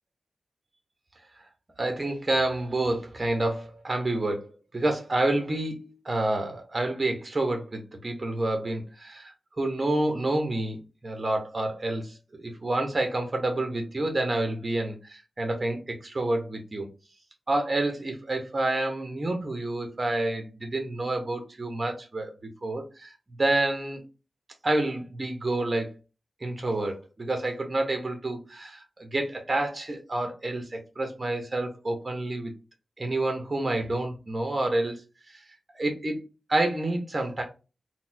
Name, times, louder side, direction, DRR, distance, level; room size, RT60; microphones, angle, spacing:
voice 1, 1.8-4.5 4.7-16.9 17.5-22.3 22.6-23.1 23.4-24.0 24.6-25.8 26.4-32.5 33.0-35.0 35.3-35.4 35.7-36.2 36.5-37.4, right 2 dB, 30° right, 4 dB, 0.7 m, -28 dB
4.0 x 2.1 x 2.6 m, 0.31 s
wide cardioid pair, 135°, 0 cm